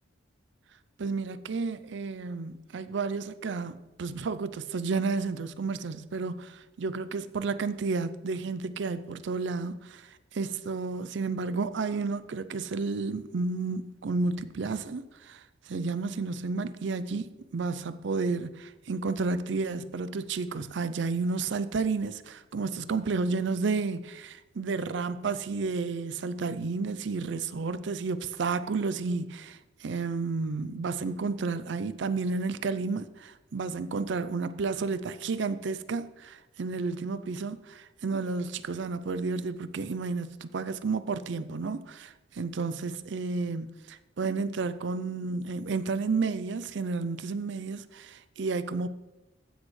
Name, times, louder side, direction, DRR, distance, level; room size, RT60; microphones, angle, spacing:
voice 1, 1.0-48.9, right 4 dB, 70° right, 0.5 m, -31 dB
15.0 x 6.3 x 3.2 m
head